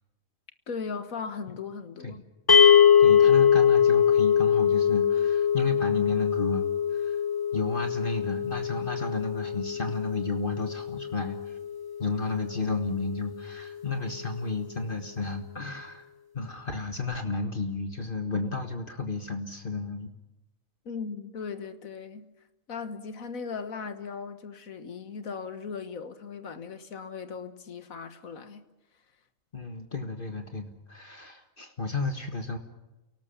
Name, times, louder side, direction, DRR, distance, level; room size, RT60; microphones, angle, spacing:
voice 1, 0.7-2.2 20.9-22.3 22.7-28.6, left 5 dB, 90° left, 1.9 m, -38 dB
sound 1, 2.5-12.8, left 8 dB, 20° left, 0.7 m, -23 dB
voice 2, 3.0-7.2 7.5-11.6 12.0-16.1 16.3-20.1 29.5-32.6, left 3 dB, 40° left, 1.7 m, -32 dB
29.0 x 18.5 x 7.1 m
omnidirectional pair, 1.4 m